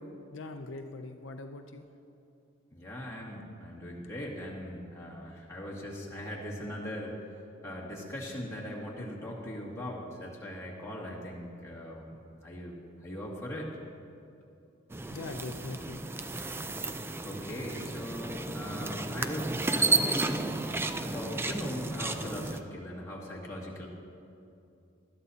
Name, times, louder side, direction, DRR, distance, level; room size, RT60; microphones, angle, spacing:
voice 1, 0.3-1.9 15.1-16.1, left 3 dB, 70° left, 5 dB, 0.5 m, -42 dB
voice 2, 2.7-7.2 7.6-12.2 12.4-12.8 13.0-13.8 17.2-20.6 21.0-23.9, equal, 15° left, -6 dB, 2.2 m, -40 dB
sound 1, 14.9-22.6, right 2 dB, 10° right, 0.3 m, -32 dB
20.0 x 12.5 x 2.8 m, 2.7 s
head